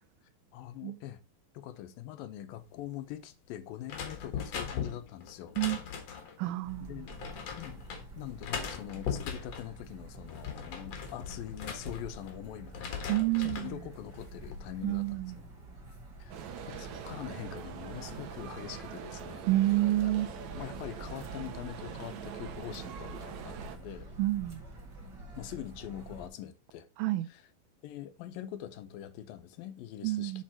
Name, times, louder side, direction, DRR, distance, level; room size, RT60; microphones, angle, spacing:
voice 1, 0.5-1.2 1.5-5.5 6.9-7.2 7.6-7.8 8.2-15.2 16.2-19.4 20.0-24.1 25.4-26.9 27.3-27.4 27.8-30.4, left 12 dB, 80° left, 2.5 m, -43 dB
sound 1, 3.9-6.4 7.1-8.0 8.4-9.7 10.1-12.4 12.7-13.7 14.2-14.6, left 7 dB, 55° left, 2.1 m, -39 dB
voice 2, 6.4-6.9 13.1-13.8 14.8-15.4 19.5-20.3 24.2-24.6 27.0-27.3 30.0-30.4, right 16 dB, 90° right, 1.8 m, -29 dB
sound 2, 6.6-26.3, right 2 dB, 35° right, 2.3 m, -48 dB
sound 3, 16.3-23.8, right 9 dB, 65° right, 1.9 m, -44 dB
7.5 x 5.4 x 4.3 m
omnidirectional pair, 4.2 m